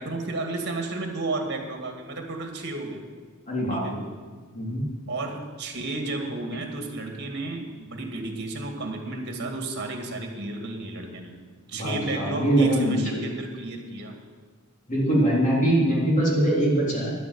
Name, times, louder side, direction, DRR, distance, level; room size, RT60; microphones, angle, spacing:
voice 1, 0.0-3.0 3.7-4.0 5.1-11.4 11.7-14.1, right 2 dB, 50° right, 3 dB, 2.2 m, -32 dB
voice 2, 3.5-4.0 4.5-4.8 11.7-13.2 14.9-17.1, right 1 dB, 35° left, -4 dB, 3.7 m, -23 dB
11.0 x 9.1 x 8.7 m, 1.5 s
head